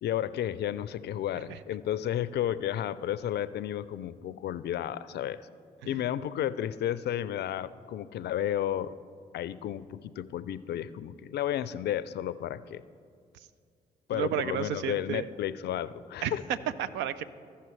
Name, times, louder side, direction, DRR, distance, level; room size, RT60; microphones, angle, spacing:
voice 1, 0.0-5.5 5.8-8.9 9.3-12.8 14.1-16.4, left 11 dB, 65° left, 16 dB, 0.4 m, -32 dB
voice 2, 14.1-15.3 16.2-17.2, right 9 dB, 75° right, 13 dB, 0.4 m, -33 dB
15.0 x 5.6 x 3.2 m, 2.3 s
hypercardioid pair, 45°, 19 cm